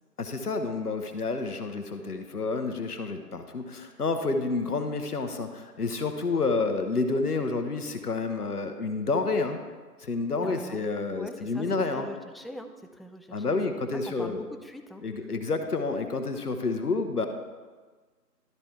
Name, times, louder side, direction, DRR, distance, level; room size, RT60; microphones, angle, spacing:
voice 1, 0.2-9.6 10.0-12.1 13.3-14.4 15.0-17.3, left 3 dB, 65° left, 7 dB, 0.9 m, -29 dB
voice 2, 10.4-10.8 11.1-11.7 11.9-13.6 14.1-15.0, left 1 dB, ahead, 5 dB, 0.3 m, -41 dB
12.0 x 4.4 x 3.5 m, 1.4 s
figure-of-eight pair, 170°, 49 cm